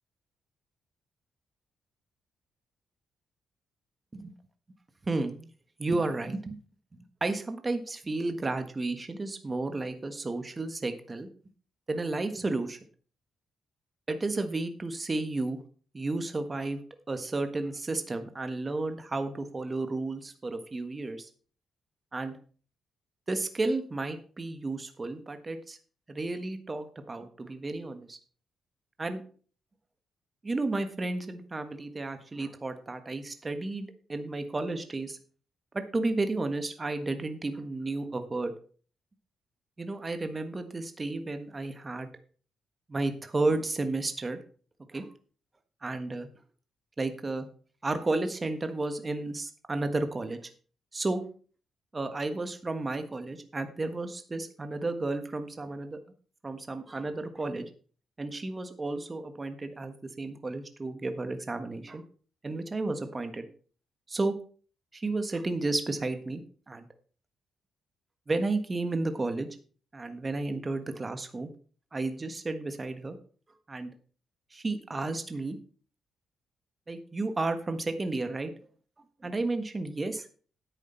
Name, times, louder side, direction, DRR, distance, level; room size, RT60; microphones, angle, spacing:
voice 1, 5.1-5.5 5.8-6.6 6.9-11.3 11.9-12.8 14.1-15.6 15.9-16.8 17.1-21.3 22.1-22.4 23.3-25.8 26.1-28.2 29.0-29.2 30.4-35.2 35.7-38.5 39.8-42.1 42.9-44.4 44.9-45.1 45.8-46.3 47.0-47.5 47.8-50.5 50.9-51.2 51.9-56.0 56.4-57.7 58.2-62.0 62.4-63.4 64.1-64.3 64.9-66.9 68.3-69.5 69.9-71.5 71.9-73.2 73.7-73.9 74.5-75.6 76.9-78.5 79.2-80.3, right 2 dB, 20° right, 8 dB, 1.4 m, -32 dB
10.5 x 8.3 x 4.4 m, 0.42 s
cardioid pair, 125°, 0 cm